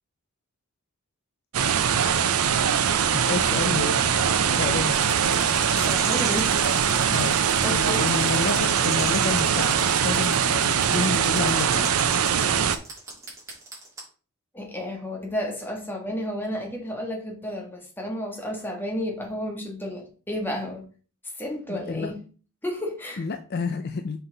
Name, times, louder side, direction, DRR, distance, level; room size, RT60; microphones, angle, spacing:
sound 1, 1.5-12.8, right 7 dB, 85° right, 0.6 m, -22 dB
voice 1, 3.1-4.2 4.5-5.2 7.1-12.0 21.7-22.1 23.2-24.2, left 4 dB, 45° left, 0.5 m, -30 dB
sound 2, 4.9-14.0, right 3 dB, 15° right, 3.0 m, -36 dB
voice 2, 5.7-6.9 7.6-8.0 14.5-20.8 21.2-22.2 22.6-23.2, left 1 dB, 10° left, 1.5 m, -32 dB
5.9 x 5.6 x 3.9 m
head